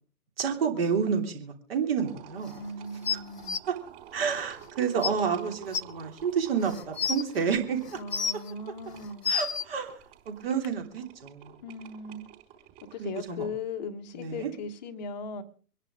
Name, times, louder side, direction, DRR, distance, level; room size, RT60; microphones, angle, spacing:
voice 1, 0.4-2.6 3.7-3.8 4.1-8.0 9.3-9.9 10.2-11.5 13.0-13.5 14.1-14.5, right 6 dB, 35° right, 3.2 m, -29 dB
sound 1, 2.0-13.3, right 11 dB, 20° right, 4.4 m, -51 dB
voice 2, 2.6-3.6 7.9-9.3 11.6-12.3 12.9-15.4, left 3 dB, 25° left, 1.4 m, -38 dB
sound 2, 3.0-3.6 4.6-4.7 5.0-5.1 5.7-5.8 6.6-7.2 7.9-8.5 9.0-9.6 10.6-10.7, left 6 dB, 75° left, 0.9 m, -29 dB
25.5 x 10.5 x 3.7 m
figure-of-eight pair, 130°, 47 cm